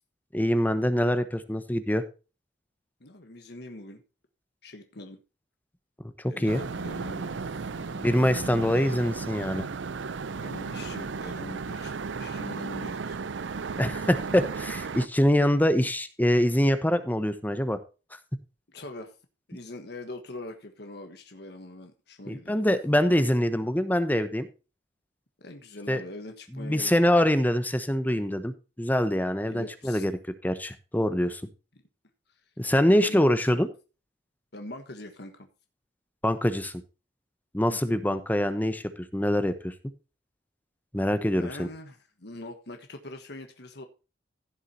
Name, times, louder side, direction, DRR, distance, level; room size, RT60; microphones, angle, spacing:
voice 1, 0.3-2.0 6.2-6.6 8.0-9.7 13.8-17.8 22.3-24.5 25.9-26.0 26.6-30.1 30.4-31.4 32.6-33.7 36.2-36.7 37.5-38.8 39.1-39.7 40.9-41.7, equal, 10° left, 11 dB, 1.0 m, -24 dB
voice 2, 3.0-4.0 4.6-5.2 6.3-7.4 7.8-8.1 8.4-8.9 10.3-13.2 18.7-19.1 19.5-22.6 25.4-26.9 29.4-30.1 33.0-33.6 34.5-35.5 37.7-38.0 41.4-43.8, left 2 dB, 60° left, 5 dB, 1.5 m, -43 dB
sound 1, 6.5-15.1, right 4 dB, 80° right, 0.6 m, -34 dB
16.0 x 7.4 x 2.8 m, 0.32 s
head